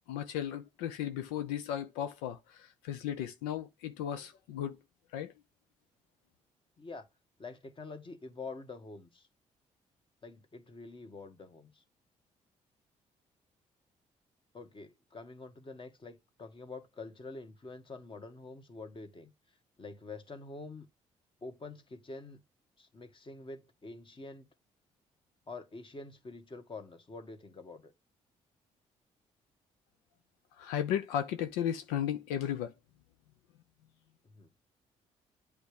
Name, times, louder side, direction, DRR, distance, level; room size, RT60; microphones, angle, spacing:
voice 1, 0.1-4.8 5.1-5.3 30.6-32.7, left 10 dB, 90° left, 0.5 m, -35 dB
voice 2, 7.4-9.3 10.2-11.8 14.5-19.3 19.8-20.9 21.4-22.4 22.8-24.5 25.5-27.9 34.3-34.5, left 3 dB, 35° left, 1.6 m, -46 dB
7.9 x 3.5 x 5.1 m
hypercardioid pair, 55°, 15 cm